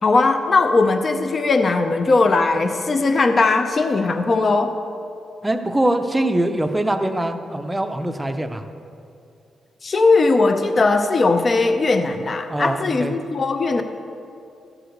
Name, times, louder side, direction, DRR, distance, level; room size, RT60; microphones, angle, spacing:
voice 1, 0.0-4.7 9.8-13.8, left 3 dB, 35° left, 7 dB, 0.6 m, -18 dB
voice 2, 5.4-8.6 12.5-13.1, right 1 dB, 10° right, 6 dB, 0.6 m, -23 dB
14.5 x 4.9 x 6.5 m, 2.5 s
cardioid pair, 130°, 0 cm